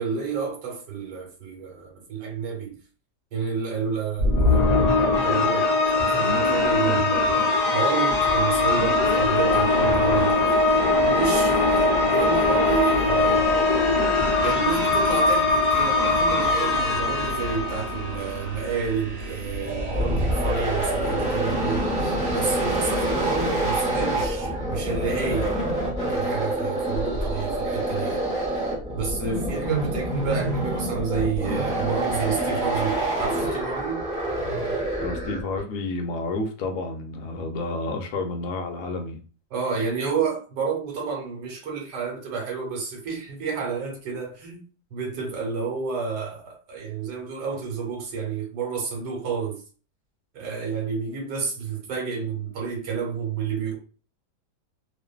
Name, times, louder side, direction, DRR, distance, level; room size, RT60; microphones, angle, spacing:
voice 1, 0.0-2.8 3.3-4.8 5.2-10.6 11.0-13.5 14.4-25.6 26.1-28.2 28.9-34.0 39.5-44.6 44.9-49.6 50.3-53.8, right 6 dB, 85° right, 1.4 m, -30 dB
sound 1, 4.2-18.6, left 3 dB, 85° left, 0.3 m, -21 dB
sound 2, 8.1-24.4, right 1 dB, 55° right, 1.1 m, -35 dB
sound 3, 19.5-35.6, right 1 dB, 5° right, 0.7 m, -26 dB
voice 2, 35.0-39.2, left 3 dB, 70° left, 0.9 m, -30 dB
2.5 x 2.5 x 2.2 m
omnidirectional pair, 1.8 m